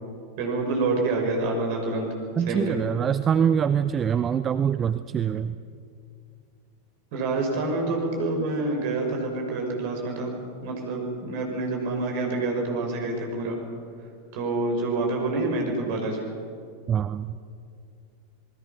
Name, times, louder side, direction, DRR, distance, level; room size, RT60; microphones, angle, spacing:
voice 1, 0.4-2.1 2.5-2.8 7.1-10.3 10.6-13.6 14.3-16.3, right 2 dB, 45° right, 2 dB, 5.5 m, -27 dB
voice 2, 2.4-5.6 16.9-17.4, right 8 dB, 25° right, 13 dB, 0.6 m, -24 dB
27.5 x 20.5 x 5.9 m, 2.3 s
figure-of-eight pair, 90°, 0 cm